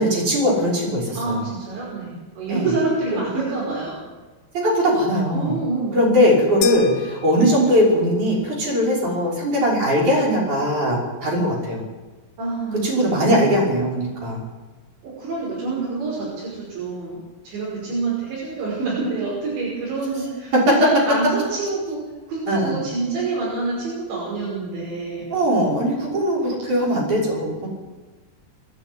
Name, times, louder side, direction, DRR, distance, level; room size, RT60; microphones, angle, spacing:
voice 1, 0.0-1.4 2.5-2.7 4.5-5.6 5.9-11.8 12.7-14.4 20.5-20.7 22.5-22.8 25.3-27.7, equal, 45° right, 0 dB, 7.2 m, -20 dB
voice 2, 1.2-4.0 5.3-6.0 12.4-12.9 15.0-22.0 22.3-25.3, right 3 dB, 85° right, -6 dB, 7.9 m, -27 dB
sound 1, 6.6-8.1, left 10 dB, 65° left, 2.6 m, -32 dB
23.5 x 11.5 x 9.5 m, 1.3 s
omnidirectional pair, 5.0 m